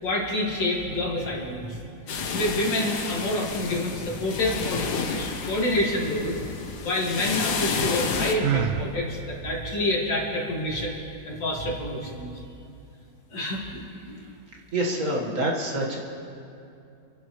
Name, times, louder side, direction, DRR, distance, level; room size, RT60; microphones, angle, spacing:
voice 1, 0.0-1.8 2.3-6.4 6.8-11.0 11.3-12.3 13.3-13.8 14.1-14.2, left 1 dB, 85° left, -2 dB, 2.9 m, -27 dB
sound 1, 2.1-8.3, left 5 dB, 65° left, 1.5 m, -31 dB
Sigh, 8.4-8.9, right 9 dB, 80° right, 1.2 m, -25 dB
voice 2, 14.7-16.0, right 1 dB, 45° right, -2 dB, 1.9 m, -26 dB
29.0 x 11.5 x 3.2 m, 2.6 s
omnidirectional pair, 1.9 m